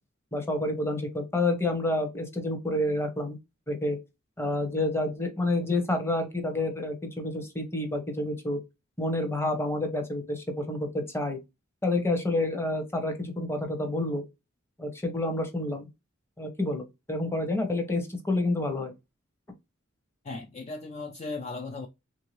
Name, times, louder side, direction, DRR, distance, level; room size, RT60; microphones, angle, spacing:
voice 1, 0.3-3.4 3.7-4.0 4.4-8.6 9.0-11.4 11.8-14.2 14.8-15.9 16.4-18.9, left 2 dB, 10° left, 0.8 m, -29 dB
voice 2, 20.2-21.9, left 3 dB, 35° left, 0.4 m, -37 dB
3.4 x 2.7 x 3.1 m
head